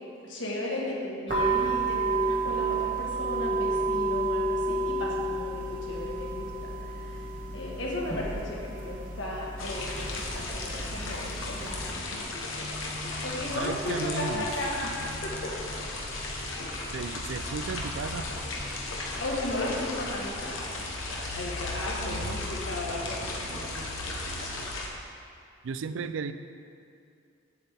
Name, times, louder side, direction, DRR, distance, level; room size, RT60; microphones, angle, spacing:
voice 1, 0.2-7.2 7.5-12.0 13.2-14.9 15.2-15.5 19.2-20.8 21.1-24.1, left 1 dB, 70° left, -3 dB, 1.6 m, -35 dB
sound 1, 1.3-11.9, right 2 dB, 40° right, 1.4 m, -31 dB
sound 2, 9.6-24.9, left 2 dB, 90° left, 1.0 m, -35 dB
sound 3, 9.9-24.4, right 1 dB, 55° right, 1.0 m, -47 dB
voice 2, 13.6-14.5 16.9-18.3 22.0-22.5 25.6-26.3, right 5 dB, 80° right, 11 dB, 0.4 m, -34 dB
8.2 x 8.1 x 3.5 m, 2.4 s
head